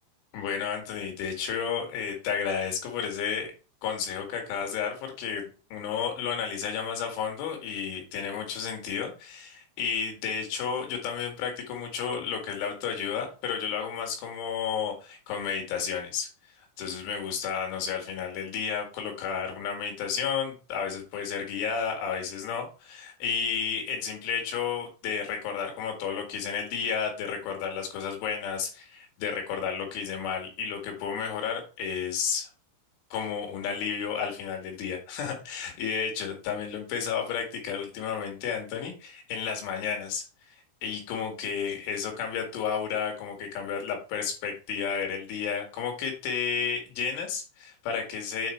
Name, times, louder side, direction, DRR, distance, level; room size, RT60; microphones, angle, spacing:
voice 1, 0.3-3.5 3.8-16.3 16.6-32.5 33.1-40.2 40.8-48.5, left 7 dB, 70° left, 3 dB, 4.5 m, -32 dB
8.9 x 4.1 x 4.5 m, 0.34 s
omnidirectional pair, 5.8 m